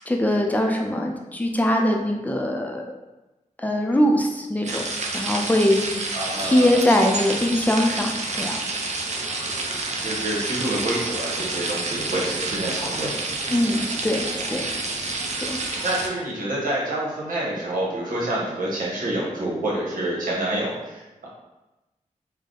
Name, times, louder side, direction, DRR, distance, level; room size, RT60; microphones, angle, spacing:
voice 1, 0.1-2.8 3.6-4.8 5.1-8.6 13.5-14.7 15.4-15.8, left 1 dB, 10° left, 1 dB, 0.5 m, -22 dB
sound 1, 4.6-16.1, right 3 dB, 55° right, 0.5 m, -29 dB
voice 2, 6.1-6.7 10.0-13.1 15.8-21.3, right 1 dB, 90° right, -5 dB, 1.1 m, -27 dB
3.4 x 2.1 x 3.7 m, 1.0 s
cardioid pair, 70°, 14 cm